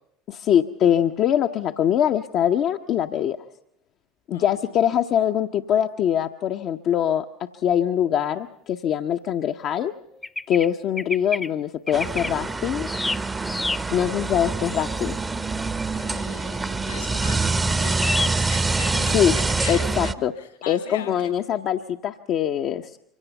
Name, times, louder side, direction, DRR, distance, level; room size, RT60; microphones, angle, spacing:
voice 1, 0.3-3.4 4.3-7.3 7.6-9.9 10.5-12.9 13.9-15.2 19.1-19.3 19.7-20.3 20.7-22.9, left 10 dB, 50° left, 5 dB, 0.7 m, -23 dB
sound 1, 10.2-10.7 11.0-11.5 11.9-12.3 12.8-13.8 14.3-15.2 18.0-18.3 18.7-19.1 19.6-19.8, left 2 dB, 15° left, 0.8 m, -29 dB
sound 2, 11.9-20.1, right 3 dB, 20° right, 0.8 m, -25 dB
voice 2, 15.9-21.3, left 6 dB, 85° left, 7 dB, 3.9 m, -39 dB
24.5 x 17.0 x 6.9 m, 0.76 s
hypercardioid pair, 70°, 0 cm